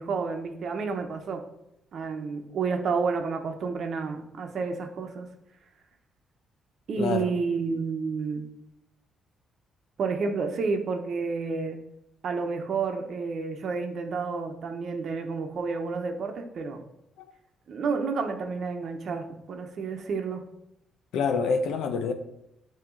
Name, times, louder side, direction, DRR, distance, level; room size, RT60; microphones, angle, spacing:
voice 1, 0.0-1.4 1.9-5.3 6.9-8.5 10.0-11.8 12.2-16.8 17.7-20.4, right 4 dB, 60° right, 5 dB, 0.8 m, -30 dB
voice 2, 7.0-7.3 21.1-22.1, left 5 dB, 80° left, 8 dB, 0.6 m, -26 dB
8.8 x 3.0 x 3.8 m, 0.81 s
cardioid pair, 90°, 0 cm